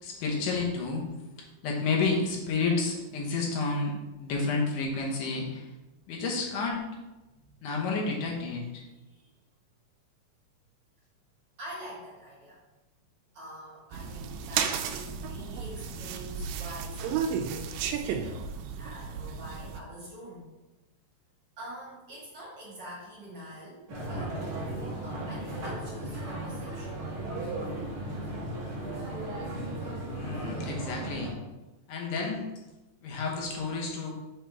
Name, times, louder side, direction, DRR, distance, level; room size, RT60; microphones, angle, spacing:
voice 1, 0.0-1.1 1.6-5.7 6.1-6.8 7.6-8.8 30.1-31.3 31.9-32.4 33.0-34.1, left 4 dB, 75° left, -1 dB, 2.5 m, -30 dB
voice 2, 11.6-12.6 13.3-18.5 18.8-20.5 21.6-27.1 29.2-29.5, right 1 dB, 50° right, -6 dB, 2.3 m, -46 dB
sound 1, 13.9-19.8, right 7 dB, 90° right, 2.3 m, -33 dB
sound 2, 23.9-31.3, right 1 dB, 70° right, 0.8 m, -35 dB
6.7 x 3.9 x 4.6 m, 1.1 s
omnidirectional pair, 3.9 m